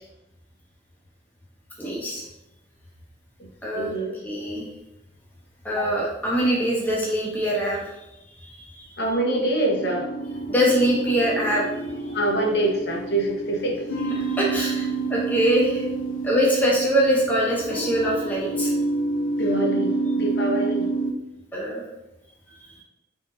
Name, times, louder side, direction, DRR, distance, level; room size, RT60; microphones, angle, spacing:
voice 1, 1.8-2.2 3.6-3.9 4.2-4.6 5.6-7.9 8.4-9.0 10.5-12.2 14.2-15.8 16.2-18.7 21.5-21.8, equal, 10° left, -4 dB, 0.8 m, -23 dB
voice 2, 3.7-4.3 9.0-10.1 12.1-13.8 19.4-20.9, right 1 dB, 60° left, 0 dB, 0.8 m, -25 dB
sound 1, 9.3-21.1, right 3 dB, 85° left, 0.5 m, -28 dB
4.2 x 3.7 x 2.6 m, 0.90 s
head